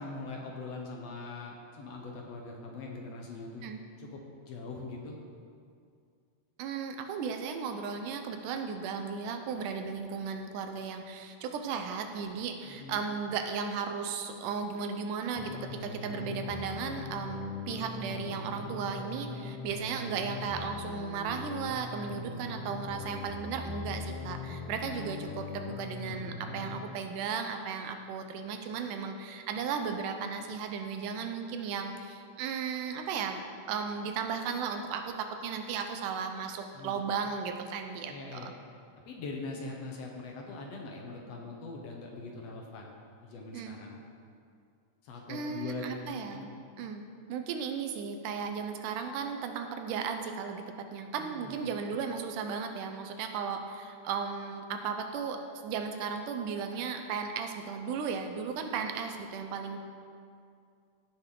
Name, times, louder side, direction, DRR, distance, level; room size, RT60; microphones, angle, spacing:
voice 1, 0.0-3.7 4.0-5.2 12.6-13.1 36.7-37.0 38.1-38.5 39.1-42.9 43.2-44.0 45.0-46.5 51.2-51.7 59.7-59.8, left 3 dB, 65° left, 0 dB, 1.9 m, -42 dB
voice 2, 6.6-33.4 33.7-38.5 43.5-43.8 45.3-46.5 46.8-47.0 47.3-50.6 50.9-59.8, right 6 dB, 90° right, 6 dB, 2.3 m, -35 dB
sound 1, 15.4-26.8, left 4 dB, 85° left, 2.4 m, -41 dB
16.0 x 6.8 x 3.8 m, 2.3 s
omnidirectional pair, 3.6 m